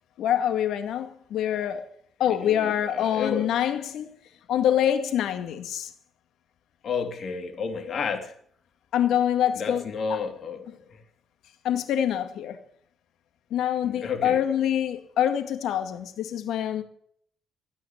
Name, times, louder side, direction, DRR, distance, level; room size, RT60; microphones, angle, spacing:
voice 1, 0.2-1.9 2.2-4.1 4.5-5.9 8.9-10.2 10.7-10.8 11.6-12.6 13.5-16.8, left 10 dB, 80° left, 2.1 m, -25 dB
voice 2, 2.4-3.5 6.8-8.3 9.6-10.6 13.8-14.4, left 5 dB, 55° left, 3.0 m, -31 dB
16.5 x 9.4 x 7.4 m
cardioid pair, 90°, 0 cm